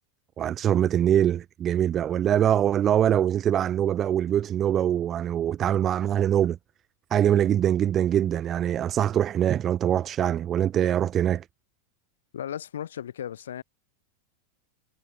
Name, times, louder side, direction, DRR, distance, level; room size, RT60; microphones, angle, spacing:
voice 1, 0.4-6.6 7.1-11.5, right 10 dB, 25° right, 0.7 m, -23 dB
voice 2, 12.3-13.6, left 10 dB, 65° left, 3.8 m, -35 dB
figure-of-eight pair, 90°, 0 cm